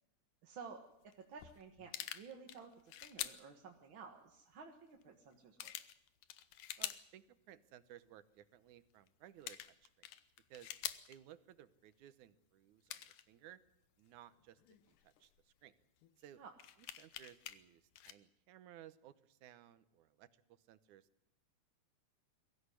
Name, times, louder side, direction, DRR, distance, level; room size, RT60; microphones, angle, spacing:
voice 1, 0.4-0.8 1.2-5.7 16.4-16.5, right 5 dB, 45° right, 2 dB, 2.0 m, -53 dB
sound 1, 1.1-1.2 1.4-3.4 4.5-4.6 5.0-5.1 5.6-7.1 7.5-7.6 9.1-9.2 9.4-11.2 12.1-12.2 12.9-13.2 14.4-15.4 16.0-16.1 16.6-17.6 18.0-18.1, left 12 dB, 85° left, 2.6 m, -47 dB
voice 2, 6.8-10.1 10.5-10.7 11.1-13.6 14.0-14.6 14.9-15.7 16.2-16.4 17.0-20.3 20.6-21.1, right 11 dB, 80° right, 14 dB, 2.4 m, -59 dB
22.5 x 15.5 x 9.8 m, 0.82 s
omnidirectional pair, 3.5 m